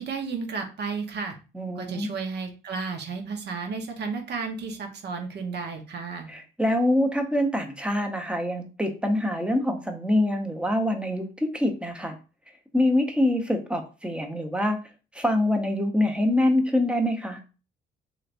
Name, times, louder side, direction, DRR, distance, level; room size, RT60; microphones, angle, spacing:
voice 1, 0.0-1.3 1.7-6.3, right 5 dB, 55° right, 4 dB, 0.9 m, -33 dB
voice 2, 1.5-2.1 6.3-12.2 12.7-14.8 15.1-17.4, left 1 dB, 5° right, 4 dB, 0.7 m, -25 dB
3.2 x 3.0 x 2.5 m, 0.32 s
cardioid pair, 90°, 20 cm